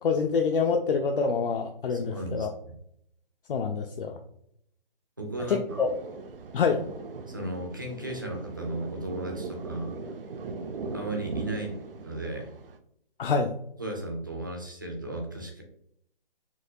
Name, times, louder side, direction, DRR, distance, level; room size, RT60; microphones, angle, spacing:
voice 1, 0.0-2.5 3.5-4.2 5.5-5.9 6.5-6.8 13.2-13.5, left 5 dB, 65° left, 3 dB, 0.4 m, -26 dB
voice 2, 1.9-2.7 4.1-4.2 5.2-5.9 7.3-9.9 10.9-11.8 12.0-12.5 13.8-15.6, right 1 dB, 20° right, 2 dB, 0.3 m, -35 dB
Thunder, 5.7-12.8, right 3 dB, 70° right, 0.5 m, -39 dB
4.4 x 2.0 x 2.7 m, 0.70 s
figure-of-eight pair, 155°, 29 cm